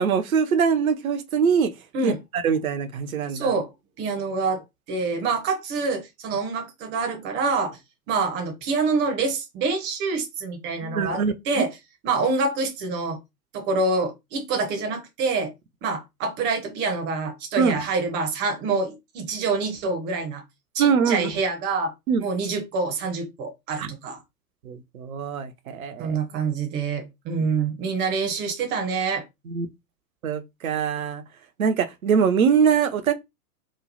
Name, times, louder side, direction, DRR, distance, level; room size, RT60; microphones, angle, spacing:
voice 1, 0.0-1.7 2.0-3.5 10.8-11.6 17.6-17.8 20.8-21.3 22.1-22.2 23.8-23.9 24.6-26.2 29.5-29.7 30.2-31.2 31.6-33.1, right 6 dB, 60° right, 0.7 m, -23 dB
voice 2, 3.3-3.7 4.0-7.8 8.1-11.7 12.0-13.2 13.5-15.5 15.8-20.4 20.7-21.9 22.2-24.2 26.0-29.3, right 4 dB, 20° right, 0.8 m, -26 dB
3.1 x 2.3 x 4.0 m
figure-of-eight pair, 105°, 48 cm